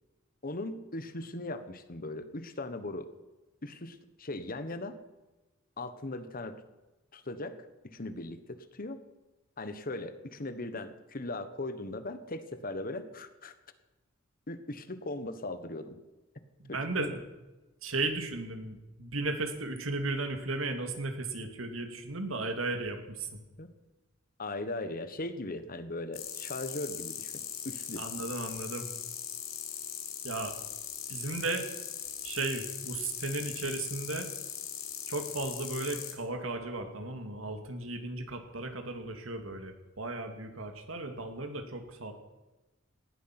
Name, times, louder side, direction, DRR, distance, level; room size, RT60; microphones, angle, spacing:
voice 1, 0.4-3.1 3.6-5.0 5.8-6.6 7.1-7.6 7.8-9.0 9.6-13.5 14.5-16.0 16.7-17.1 23.6-23.7 24.4-28.0, left 2 dB, 45° left, 11 dB, 1.3 m, -39 dB
voice 2, 16.6-17.2 17.8-23.4 28.0-28.9 30.2-30.5 31.1-31.7 32.2-34.3 35.1-42.1, right 2 dB, 85° right, 6 dB, 2.4 m, -35 dB
sound 1, 26.1-36.1, left 9 dB, 90° left, 3.4 m, -40 dB
18.5 x 13.0 x 6.0 m, 1.1 s
head